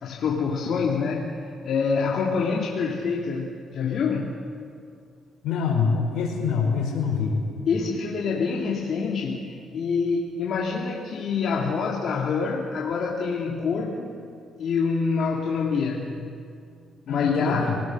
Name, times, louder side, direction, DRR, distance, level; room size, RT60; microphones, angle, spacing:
voice 1, 0.0-4.3 7.7-14.1 14.6-16.2 17.1-17.8, left 5 dB, 60° left, -2 dB, 2.5 m, -26 dB
voice 2, 5.4-7.4 17.1-17.8, left 5 dB, 80° left, 1 dB, 5.0 m, -25 dB
24.5 x 19.0 x 6.4 m, 2.3 s
cardioid pair, 90°, 0 cm